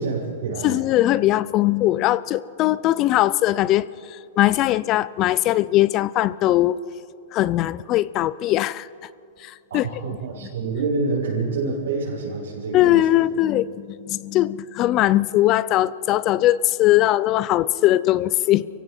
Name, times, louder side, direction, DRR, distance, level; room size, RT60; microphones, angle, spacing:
voice 1, 0.0-0.8 9.7-13.2, right 3 dB, 85° right, -6 dB, 6.2 m, -27 dB
voice 2, 0.6-6.8 7.3-8.9 9.4-9.9 12.7-18.7, left 15 dB, 25° left, 19 dB, 0.4 m, -20 dB
29.5 x 16.5 x 6.0 m, 2.5 s
supercardioid pair, 170°, 0 cm